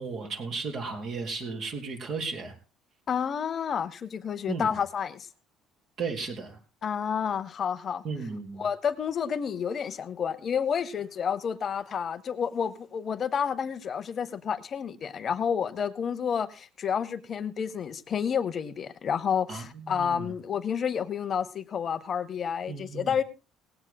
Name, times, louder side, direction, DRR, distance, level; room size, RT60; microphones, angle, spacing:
voice 1, 0.0-2.6 4.5-4.7 6.0-6.6 8.0-8.7 19.5-20.3 22.7-23.1, right 4 dB, 40° right, 3.7 m, -35 dB
voice 2, 3.1-5.3 6.8-8.0 8.6-23.2, left 7 dB, 30° left, 0.7 m, -30 dB
19.5 x 16.5 x 2.2 m
cardioid pair, 165°, 0 cm